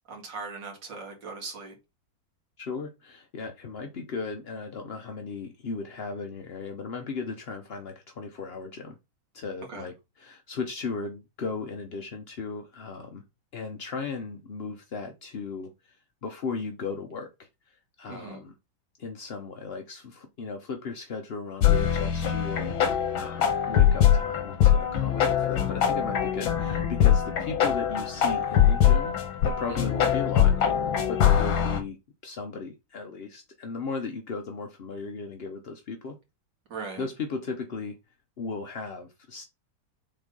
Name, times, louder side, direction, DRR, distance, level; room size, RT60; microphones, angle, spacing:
voice 1, 0.1-1.8 9.7-9.9 18.1-18.4 29.7-29.9 36.7-37.1, right 4 dB, 65° right, 2.8 m, -39 dB
voice 2, 2.6-9.0 9.3-13.2 13.5-18.5 19.0-29.1 29.4-30.6 31.1-32.0 32.2-36.2 37.0-38.0 38.4-39.4, left 4 dB, 55° left, 0.6 m, -36 dB
sound 1, 21.6-31.8, left 9 dB, 85° left, 1.9 m, -23 dB
5.4 x 4.0 x 5.2 m
omnidirectional pair, 2.1 m